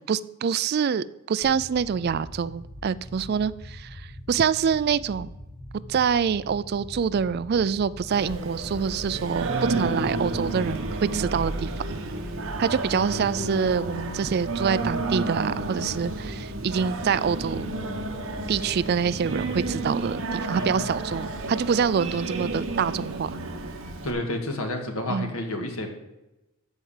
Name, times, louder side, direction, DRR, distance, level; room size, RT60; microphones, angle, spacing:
voice 1, 0.1-5.3 5.9-12.0 12.6-17.7 18.5-23.4 25.1-25.3, right 6 dB, 45° right, 0.3 m, -26 dB
sound 1, 1.4-19.9, left 1 dB, 30° right, 2.4 m, -43 dB
Singing, 8.1-24.1, right 2 dB, 70° right, 1.3 m, -31 dB
voice 2, 20.5-20.9 24.0-25.9, left 1 dB, 75° left, 1.8 m, -30 dB
13.5 x 4.8 x 7.2 m
head